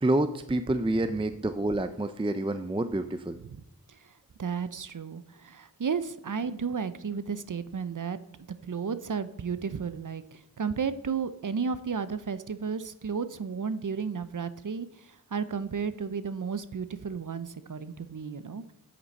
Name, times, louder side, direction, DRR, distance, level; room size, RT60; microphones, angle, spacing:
voice 1, 0.0-3.4, right 1 dB, 15° right, 10 dB, 0.5 m, -28 dB
voice 2, 4.4-8.2 8.6-10.2 10.6-14.9 15.3-18.7, right 6 dB, 60° right, 13 dB, 0.6 m, -33 dB
8.8 x 8.4 x 4.2 m, 0.76 s
wide cardioid pair, 50°, 36 cm